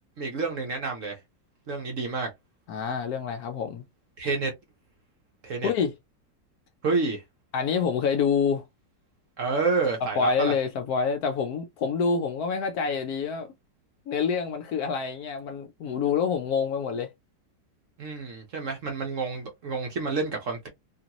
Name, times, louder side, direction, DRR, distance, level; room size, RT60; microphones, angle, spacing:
voice 1, 0.2-1.2 1.7-2.3 4.2-4.5 5.4-5.7 6.8-7.2 9.4-10.5 18.0-20.7, right 4 dB, 55° right, 1.0 m, -29 dB
voice 2, 2.7-3.8 5.6-5.9 7.5-8.6 10.2-13.5 14.1-17.1, left 6 dB, 70° left, 0.9 m, -27 dB
3.0 x 2.5 x 2.8 m
omnidirectional pair, 1.9 m